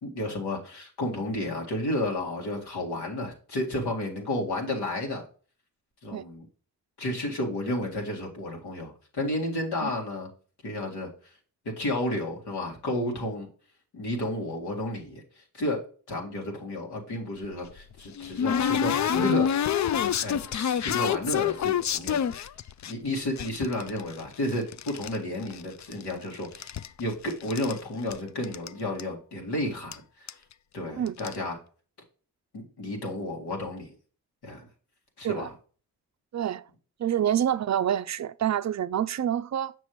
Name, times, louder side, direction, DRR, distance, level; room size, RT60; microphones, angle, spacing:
voice 1, 0.0-5.2 6.0-6.5 7.0-10.3 10.6-11.1 11.7-13.5 13.9-19.7 20.2-22.3 22.9-30.4 30.7-31.6 32.5-33.9 34.4-34.7 35.2-35.5, left 1 dB, 80° left, 2.1 m, -32 dB
sound 1, 17.4-22.9 23.4-25.2 25.4-26.2 26.4-27.8 28.1-28.2 28.4-28.7 29.0-29.1 29.9-30.0 30.3-30.5 31.1-31.4, left 8 dB, 45° left, 0.5 m, -28 dB
voice 2, 36.3-36.7 37.0-39.7, right 10 dB, 45° right, 0.4 m, -27 dB
6.5 x 6.0 x 3.1 m
supercardioid pair, 45°, 39 cm